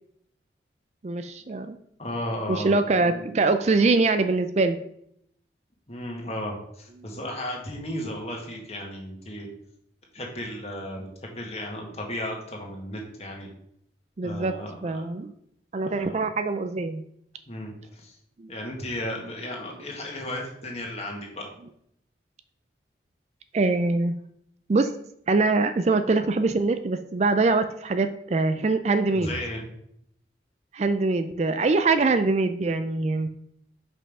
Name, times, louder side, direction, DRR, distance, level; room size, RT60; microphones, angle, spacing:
voice 1, 1.0-1.8 2.5-4.8 14.2-14.5 14.8-15.3 15.7-17.0 18.4-18.5 23.5-24.2 24.7-24.9 25.3-29.3 30.7-33.3, right 3 dB, 40° right, 9 dB, 0.4 m, -23 dB
voice 2, 2.0-2.7 5.9-9.5 10.1-13.5 14.2-15.0 15.9-16.1 17.5-18.2 18.5-21.5 29.1-29.6, left 1 dB, 35° left, 0 dB, 1.7 m, -34 dB
5.4 x 5.4 x 5.4 m, 0.72 s
head